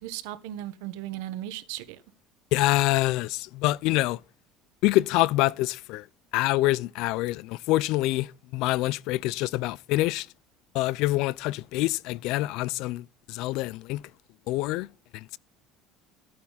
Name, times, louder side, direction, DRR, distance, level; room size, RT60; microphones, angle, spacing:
voice 1, 0.0-2.0, right 13 dB, 85° right, 1.3 m, -36 dB
voice 2, 2.5-4.2 4.8-6.0 6.3-10.3 10.7-14.0 14.5-14.9 15.1-15.4, left 18 dB, 70° left, 0.4 m, -26 dB
14.0 x 8.6 x 4.1 m
cardioid pair, 115°, 0 cm